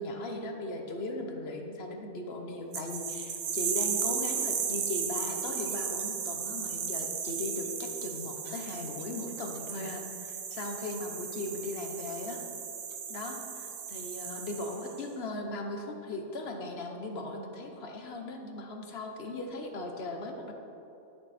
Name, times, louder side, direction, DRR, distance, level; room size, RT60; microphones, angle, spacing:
voice 1, 0.0-12.4 13.1-20.5, left 2 dB, 50° left, 3 dB, 1.1 m, -38 dB
sound 1, 2.7-15.0, right 7 dB, 85° right, 1.3 m, -35 dB
12.0 x 6.9 x 4.2 m, 2.9 s
omnidirectional pair, 1.5 m